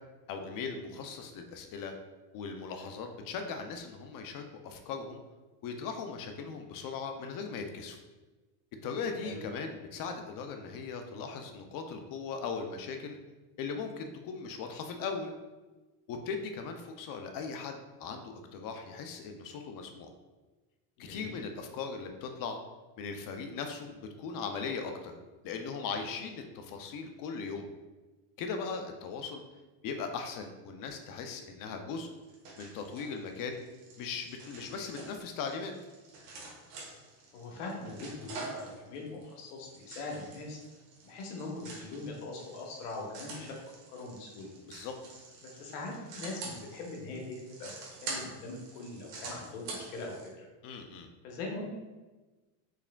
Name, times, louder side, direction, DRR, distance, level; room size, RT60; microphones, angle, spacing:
voice 1, 0.3-1.9 2.3-5.2 5.6-8.0 8.8-13.2 13.6-15.3 16.1-20.1 21.0-22.6 23.0-25.2 25.4-27.7 28.4-29.4 29.8-32.1 32.6-33.6 34.0-35.7 44.6-44.9 50.6-51.1, left 5 dB, 45° left, 5 dB, 0.5 m, -39 dB
voice 2, 21.0-21.3 37.3-40.6 41.0-43.6 43.9-44.5 45.4-47.2 47.5-47.8 48.0-50.5 51.2-51.7, left 3 dB, 85° left, 0 dB, 1.0 m, -41 dB
sound 1, 32.0-50.3, right 3 dB, 80° right, 1.3 m, -46 dB
4.6 x 3.4 x 2.2 m, 1.2 s
supercardioid pair, 115°, 47 cm